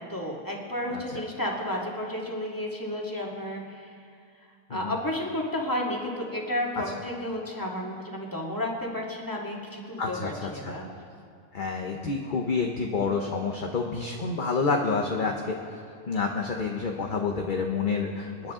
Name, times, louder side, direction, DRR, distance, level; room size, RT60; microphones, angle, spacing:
voice 1, 0.1-3.9 4.7-10.9, left 1 dB, 15° left, -2 dB, 2.1 m, -32 dB
voice 2, 10.0-10.7 11.5-15.8 16.1-18.5, left 4 dB, 40° left, 2 dB, 0.9 m, -29 dB
28.0 x 10.0 x 3.8 m, 2.3 s
omnidirectional pair, 1.5 m